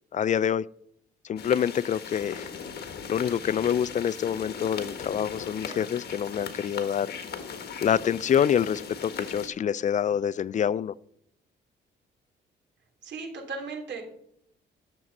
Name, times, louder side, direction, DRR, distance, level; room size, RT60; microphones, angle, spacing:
voice 1, 0.1-0.7 1.2-2.5 3.1-7.1 7.8-10.9, left 8 dB, 40° left, 0.4 m, -26 dB
sound 1, 1.4-9.5, left 6 dB, 55° left, 1.5 m, -39 dB
voice 2, 13.0-14.0, right 4 dB, 65° right, 3.2 m, -36 dB
10.5 x 7.1 x 5.3 m
cardioid pair, 90°, 20 cm